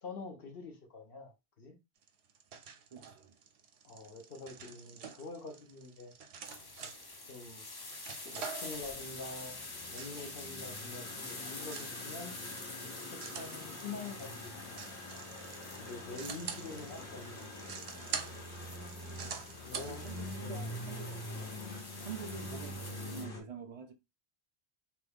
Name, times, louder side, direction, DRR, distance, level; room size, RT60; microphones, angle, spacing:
voice 1, 0.0-1.8 3.8-6.1 7.3-7.7 8.2-12.3 12.9-14.9 15.8-17.8 19.2-20.0 20.4-20.7, left 3 dB, 60° left, 0.9 m, -46 dB
sound 1, 2.0-20.3, right 6 dB, 75° right, 0.8 m, -47 dB
voice 2, 2.9-3.3 16.9-17.0 19.9-21.2 22.0-23.9, right 7 dB, 55° right, 0.4 m, -47 dB
sound 2, 6.4-23.2, left 3 dB, 40° left, 0.3 m, -48 dB
sound 3, 8.7-23.4, left 1 dB, 85° left, 1.4 m, -45 dB
2.9 x 2.3 x 3.4 m
omnidirectional pair, 1.1 m